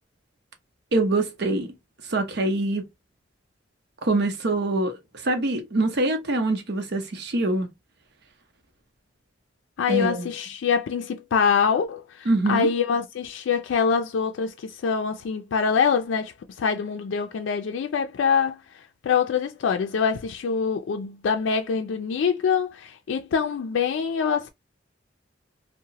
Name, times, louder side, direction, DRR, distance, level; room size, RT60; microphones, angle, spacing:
voice 1, 0.9-1.7 2.1-2.9 4.0-7.7 9.9-10.3 12.3-12.7, right 2 dB, 60° right, 0.7 m, -24 dB
voice 2, 9.8-16.3 16.6-18.6 19.0-24.5, left 6 dB, 85° left, 0.3 m, -24 dB
2.9 x 2.1 x 2.7 m
head